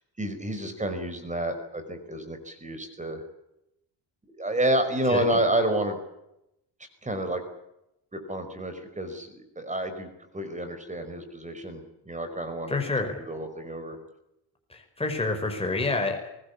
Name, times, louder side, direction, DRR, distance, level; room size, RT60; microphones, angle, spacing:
voice 1, 0.2-3.2 4.3-6.0 7.0-7.4 8.1-12.8 13.2-14.0, right 1 dB, 15° right, 8 dB, 5.2 m, -29 dB
voice 2, 5.1-5.4 12.7-13.1 14.7-16.3, left 3 dB, 15° left, 3 dB, 5.4 m, -28 dB
24.0 x 20.5 x 8.5 m, 0.85 s
cardioid pair, 125°, 42 cm